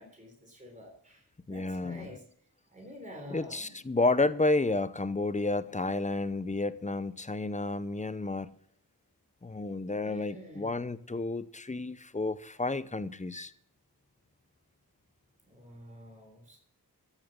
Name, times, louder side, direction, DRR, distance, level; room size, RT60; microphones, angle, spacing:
voice 1, 0.0-2.2 2.7-3.8 10.0-10.7 15.4-16.6, left 1 dB, 20° right, 3.6 m, -48 dB
voice 2, 1.5-2.1 3.3-8.5 9.4-13.5, left 2 dB, 20° left, 0.7 m, -31 dB
13.5 x 7.3 x 7.2 m
wide cardioid pair, 70°, 39 cm